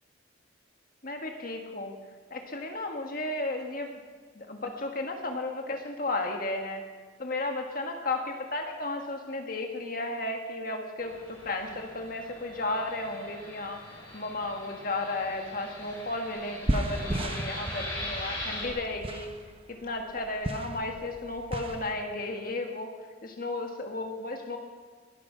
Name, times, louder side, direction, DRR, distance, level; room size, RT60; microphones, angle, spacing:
voice 1, 1.0-1.9 2.3-3.9 4.3-6.8 7.2-13.8 14.1-19.3 19.7-22.9 23.2-24.6, left 2 dB, 45° left, 3 dB, 1.6 m, -34 dB
Fixed-wing aircraft airplane, 11.0-18.7, left 1 dB, 25° left, 4.8 m, -41 dB
sound 1, 16.0-16.1 16.4-21.9, right 1 dB, 30° right, 1.0 m, -34 dB
21.0 x 10.0 x 6.1 m, 1.5 s
head